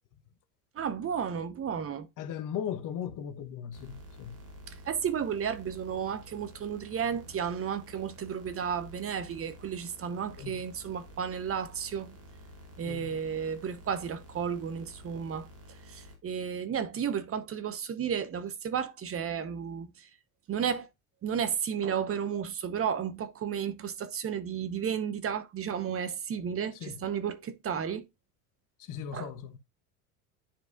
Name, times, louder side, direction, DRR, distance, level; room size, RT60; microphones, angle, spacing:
voice 1, 0.7-2.1 4.7-12.2 12.8-15.5 15.9-20.1 20.5-20.9 21.2-28.0 29.1-29.3, right 7 dB, 30° right, 0.9 m, -33 dB
voice 2, 2.2-4.4 10.4-10.6 12.8-13.2 26.7-27.0 28.8-29.5, left 9 dB, 45° left, 1.1 m, -37 dB
sound 1, 3.7-16.2, equal, 90° right, 2.6 m, -51 dB
10.0 x 4.7 x 2.5 m
hypercardioid pair, 80°, 43 cm